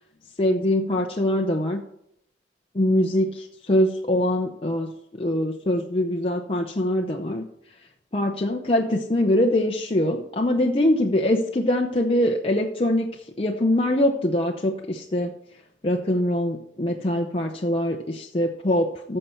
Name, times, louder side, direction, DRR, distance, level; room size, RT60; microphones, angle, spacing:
voice 1, 0.4-1.8 2.7-4.9 5.2-7.5 8.1-15.3 15.8-19.2, left 1 dB, 30° left, 1 dB, 0.7 m, -23 dB
14.5 x 6.6 x 4.4 m, 0.73 s
head